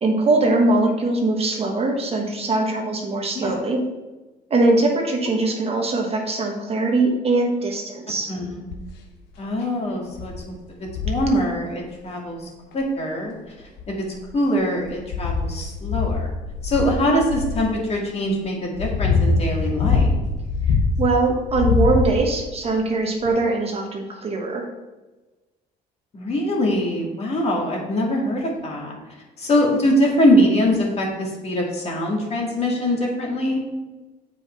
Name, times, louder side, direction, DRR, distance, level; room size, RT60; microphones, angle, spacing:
voice 1, 0.0-3.8 4.5-8.3 21.0-24.7, right 2 dB, 35° right, 1 dB, 1.2 m, -21 dB
voice 2, 8.3-8.6 9.4-12.4 12.7-13.3 13.9-14.1 14.3-16.3 16.6-20.1 26.1-28.9 29.4-33.6, equal, 40° left, -1 dB, 2.0 m, -23 dB
sound 1, 8.7-9.0 9.6-9.7 10.2-10.4 10.9-11.3 12.7-12.8 13.6-14.3 14.8-17.7 18.4-21.1 21.5-22.4 23.2-23.3, left 4 dB, 90° left, 1.1 m, -23 dB
7.4 x 5.0 x 4.4 m, 1.2 s
cardioid pair, 110°, 17 cm